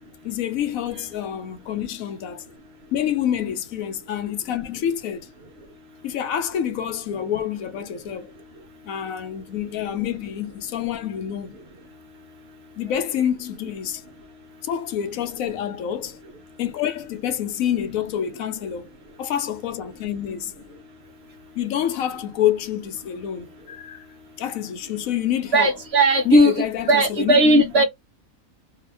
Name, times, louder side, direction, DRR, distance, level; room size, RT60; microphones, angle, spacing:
voice 1, 0.2-2.5 2.9-5.3 6.0-8.3 8.8-11.6 12.8-14.1 14.6-16.2 16.6-18.9 19.2-20.8 21.5-24.1 24.4-25.8 26.2-27.8, left 10 dB, 75° left, 1.0 m, -27 dB
voice 2, 25.5-27.8, right 1 dB, 55° right, 0.9 m, -17 dB
2.7 x 2.4 x 3.3 m
omnidirectional pair, 1.5 m